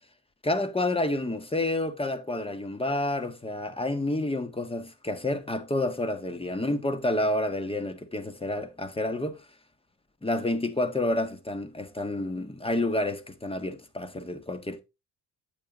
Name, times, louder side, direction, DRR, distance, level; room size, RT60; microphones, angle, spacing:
voice 1, 0.4-9.4 10.2-14.8, left 1 dB, 10° left, 1.6 m, -29 dB
8.8 x 7.2 x 3.9 m
figure-of-eight pair, 45°, 45 cm